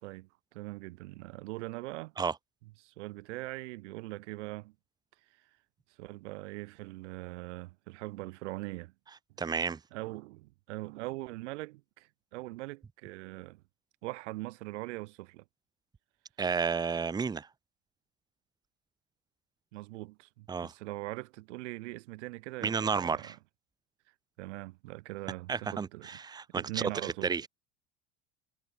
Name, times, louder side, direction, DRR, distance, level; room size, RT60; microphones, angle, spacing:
voice 1, 0.0-2.1 2.8-4.7 6.0-8.9 9.9-13.6 14.0-15.4 19.7-23.4 24.4-26.1 26.5-27.4, right 21 dB, 75° right, 3.5 m, -41 dB
voice 2, 9.4-9.8 16.4-17.5 20.5-20.7 22.6-23.3 25.5-27.5, right 5 dB, 10° right, 2.1 m, -32 dB
cardioid pair, 170°, 35 cm